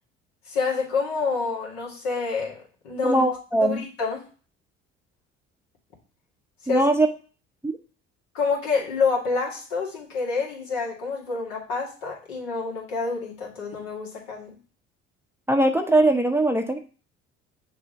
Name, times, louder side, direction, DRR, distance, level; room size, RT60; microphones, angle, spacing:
voice 1, 0.5-3.2 3.6-4.2 6.7-6.9 8.3-14.6, left 4 dB, 75° left, -3 dB, 2.1 m, -28 dB
voice 2, 3.0-3.8 6.7-7.1 7.6-7.7 15.5-16.8, right 2 dB, 5° right, 5 dB, 0.7 m, -21 dB
6.7 x 2.8 x 5.1 m, 0.37 s
hypercardioid pair, 55°, 37 cm